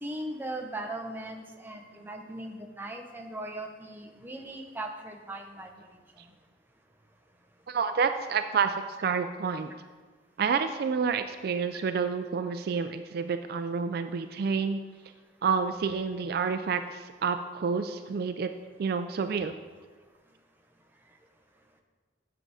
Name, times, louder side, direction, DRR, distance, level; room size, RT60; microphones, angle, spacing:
voice 1, 0.0-5.7 11.7-11.8, right 1 dB, 10° right, 3 dB, 0.7 m, -38 dB
voice 2, 7.7-9.7 10.4-14.8 15.4-18.5 18.8-19.5, right 5 dB, 50° right, 8 dB, 0.3 m, -29 dB
7.7 x 7.5 x 4.8 m, 1.4 s
head